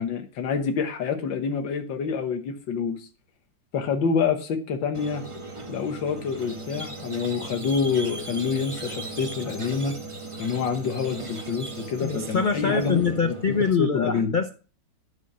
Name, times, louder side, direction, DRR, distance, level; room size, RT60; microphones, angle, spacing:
voice 1, 0.0-3.1 3.7-5.2 5.7-10.0 10.4-13.3 13.8-14.3, left 5 dB, 85° left, 6 dB, 1.9 m, -27 dB
Squeak, 4.9-13.7, right 2 dB, 20° right, 1.1 m, -37 dB
voice 2, 12.0-14.5, left 5 dB, 55° left, 7 dB, 0.5 m, -24 dB
12.5 x 4.9 x 6.0 m, 0.37 s
omnidirectional pair, 2.0 m